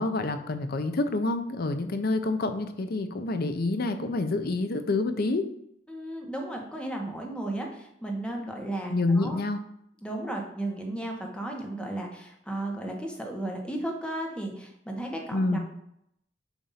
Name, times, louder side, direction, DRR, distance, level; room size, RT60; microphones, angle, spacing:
voice 1, 0.0-5.5 8.9-9.6 15.3-15.6, left 2 dB, 55° left, 8 dB, 0.6 m, -27 dB
voice 2, 5.9-9.4 10.0-15.6, right 1 dB, 5° left, 0 dB, 1.0 m, -34 dB
7.2 x 2.6 x 5.5 m, 0.76 s
head